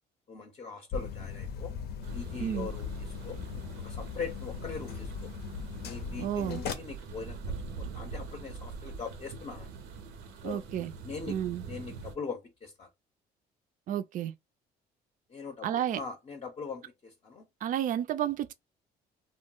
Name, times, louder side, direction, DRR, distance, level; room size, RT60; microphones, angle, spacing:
voice 1, 0.3-1.7 2.1-3.4 3.8-5.3 5.8-9.7 10.4-10.6 11.0-11.3 11.6-12.9 15.3-17.5, left 5 dB, 30° left, 0.6 m, -41 dB
sound 1, 0.9-6.7, left 6 dB, 70° left, 0.6 m, -38 dB
sound 2, 2.0-12.2, right 4 dB, 90° right, 0.7 m, -44 dB
voice 2, 6.2-6.6 10.4-10.9 11.3-11.6 13.9-14.3 15.6-16.0 17.6-18.5, right 10 dB, 55° right, 0.4 m, -31 dB
2.2 x 2.1 x 3.6 m
cardioid pair, 110°, 17 cm